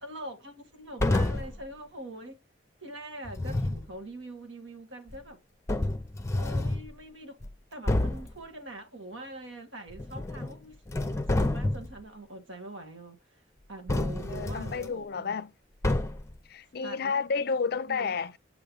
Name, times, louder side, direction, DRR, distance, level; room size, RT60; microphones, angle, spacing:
voice 1, 0.0-2.4 2.8-5.4 6.3-7.4 7.7-13.4 13.7-15.3 16.8-17.3 17.9-18.1, right 1 dB, 85° right, 2.1 m, -43 dB
sound 1, 1.0-1.6 3.3-3.9 5.1-5.2 5.7-6.9 7.4-7.5 7.9-8.3 9.9-10.6 10.9-12.0 13.9-14.9 15.8-16.4, left 2 dB, 15° left, 0.7 m, -29 dB
voice 2, 14.3-15.5 16.5-18.4, left 5 dB, 55° left, 0.5 m, -31 dB
7.6 x 3.1 x 5.4 m
head